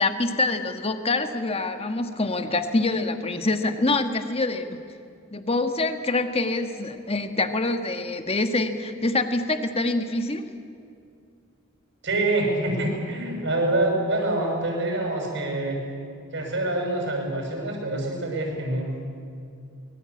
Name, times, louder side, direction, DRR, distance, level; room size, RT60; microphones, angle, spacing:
voice 1, 0.0-4.8 5.3-10.5, left 2 dB, 30° left, 7 dB, 1.5 m, -25 dB
voice 2, 12.0-15.8 16.3-18.9, right 2 dB, 60° right, 1 dB, 6.7 m, -26 dB
24.5 x 21.5 x 8.4 m, 2.4 s
head